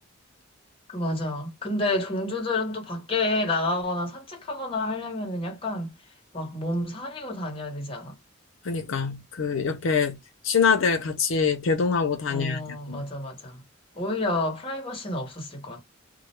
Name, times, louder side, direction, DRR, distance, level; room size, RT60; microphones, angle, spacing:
voice 1, 0.9-5.9 6.3-8.2 12.3-13.6 13.9-15.8, left 2 dB, 25° left, 0.9 m, -29 dB
voice 2, 8.6-10.2 10.4-13.0, left 5 dB, 75° left, 0.5 m, -24 dB
2.2 x 2.1 x 3.0 m
head